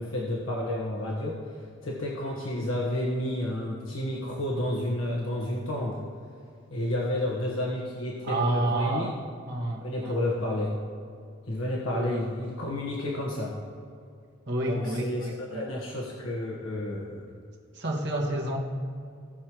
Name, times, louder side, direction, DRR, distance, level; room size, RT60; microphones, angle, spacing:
voice 1, 0.0-1.5 1.8-6.0 6.7-9.1 9.6-10.8 11.5-13.6 14.7-17.3, left 1 dB, 85° left, -4 dB, 1.4 m, -31 dB
voice 2, 8.2-9.2 9.5-10.2 11.9-12.2 12.6-12.7 14.5-15.7 17.7-18.6, right 2 dB, 55° right, -1 dB, 1.7 m, -30 dB
18.0 x 6.5 x 3.1 m, 2.3 s
head